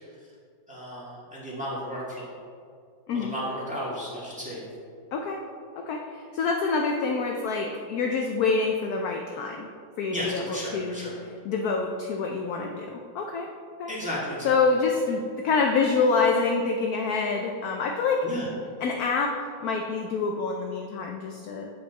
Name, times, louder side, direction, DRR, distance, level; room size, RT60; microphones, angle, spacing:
voice 1, 0.7-2.3 3.1-4.6 10.1-11.2 13.9-14.6 18.2-18.5, equal, 5° right, -8 dB, 1.7 m, -34 dB
voice 2, 5.1-5.4 5.7-9.7 10.0-11.1 11.4-13.5 13.8-13.9 14.4-18.3 18.8-21.7, left 4 dB, 70° left, 2 dB, 0.9 m, -26 dB
7.9 x 5.5 x 4.0 m, 2.2 s
omnidirectional pair, 2.1 m